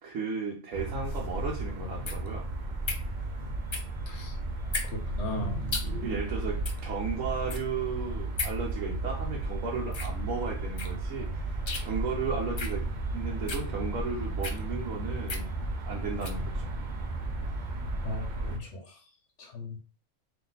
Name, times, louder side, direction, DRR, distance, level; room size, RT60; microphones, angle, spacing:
voice 1, 0.0-2.4 6.0-11.6 11.8-12.9 13.1-15.5 15.9-16.7, right 5 dB, 90° right, -3 dB, 1.3 m, -35 dB
sound 1, 0.7-18.6, right 2 dB, 50° right, 0.6 m, -34 dB
sound 2, 1.0-16.4, left 3 dB, 45° left, 0.3 m, -40 dB
voice 2, 4.9-6.2 18.0-18.8 19.4-19.7, left 1 dB, 65° left, 2 dB, 1.4 m, -36 dB
3.5 x 2.7 x 4.0 m, 0.37 s
omnidirectional pair, 1.3 m